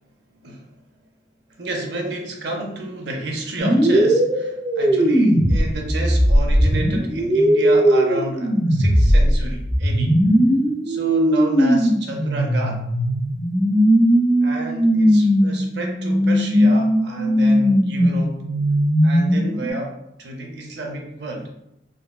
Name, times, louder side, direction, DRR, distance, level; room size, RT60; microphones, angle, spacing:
voice 1, 1.6-10.1 10.8-12.8 14.4-18.4 19.0-19.9 20.2-21.5, right 1 dB, 70° right, 1 dB, 0.5 m, -30 dB
sound 1, 3.6-19.7, equal, 15° right, 0.5 m, -18 dB
3.6 x 2.0 x 2.2 m, 0.82 s
head